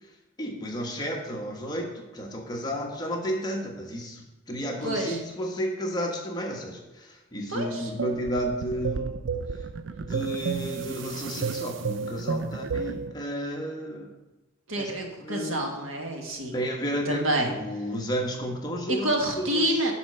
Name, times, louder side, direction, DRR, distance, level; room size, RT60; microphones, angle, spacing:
voice 1, 0.4-9.2 9.5-9.6 10.0-14.1 14.8-15.7 16.5-19.1 19.4-19.8, equal, 20° left, 0 dB, 1.1 m, -32 dB
voice 2, 4.8-5.2 7.5-7.9 14.7-16.6 17.0-17.5 18.9-19.9, right 1 dB, 90° right, 1 dB, 1.7 m, -28 dB
sound 1, 8.0-13.1, right 5 dB, 70° right, 0.4 m, -32 dB
9.8 x 4.2 x 6.7 m, 1.0 s
head